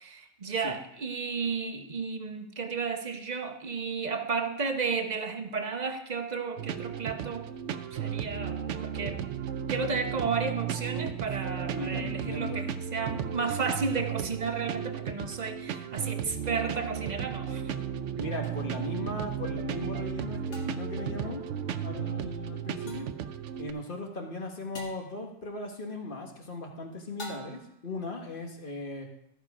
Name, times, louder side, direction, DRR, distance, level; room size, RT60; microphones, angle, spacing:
voice 1, 0.0-7.5 7.9-9.2 9.7-17.6, right 5 dB, 40° right, 5 dB, 0.9 m, -33 dB
sound 1, 6.6-23.7, right 8 dB, 75° right, 0.9 m, -34 dB
voice 2, 11.7-12.6 18.2-21.4 21.8-23.1 23.6-29.1, left 2 dB, 45° left, 2 dB, 1.6 m, -38 dB
sound 2, 18.4-18.5 20.5-21.0 22.9-23.2 24.7-25.1 27.2-27.8, equal, 70° left, 1.7 m, -45 dB
14.0 x 5.9 x 4.9 m, 0.75 s
omnidirectional pair, 1.2 m